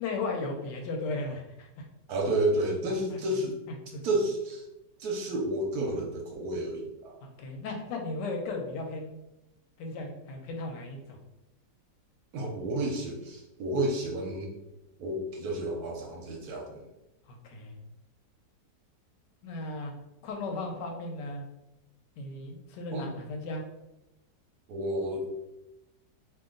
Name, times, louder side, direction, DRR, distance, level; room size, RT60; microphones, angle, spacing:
voice 1, 0.0-1.9 3.1-3.2 3.9-4.0 7.2-9.2 9.8-11.2 17.3-17.8 19.4-19.9 20.2-21.5 22.2-23.6, left 2 dB, 85° left, 2 dB, 1.2 m, -36 dB
voice 2, 2.1-3.6 4.0-4.6 5.0-7.2 12.3-14.5 15.0-16.8 22.9-23.1 24.7-25.3, right 1 dB, 70° right, 1 dB, 1.0 m, -31 dB
2.8 x 2.5 x 3.7 m, 0.93 s
omnidirectional pair, 1.9 m